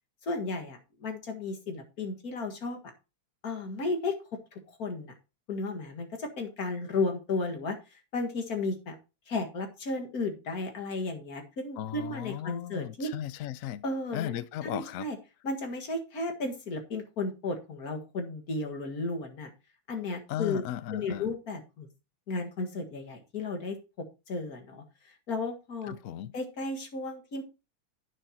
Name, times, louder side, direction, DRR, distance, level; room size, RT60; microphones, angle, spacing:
voice 1, 0.2-2.8 3.4-4.1 4.5-5.1 5.5-7.8 8.1-9.0 9.3-13.1 13.8-14.3 14.6-15.2 15.4-19.5 19.9-20.6 20.9-21.9 22.3-23.8 24.3-24.8 25.3-25.9 26.3-27.4, left 3 dB, 50° left, 2.2 m, -34 dB
voice 2, 11.8-13.8 14.1-15.1 20.3-21.3 25.9-26.3, left 11 dB, 75° left, 0.7 m, -36 dB
11.0 x 9.1 x 2.9 m
omnidirectional pair, 2.1 m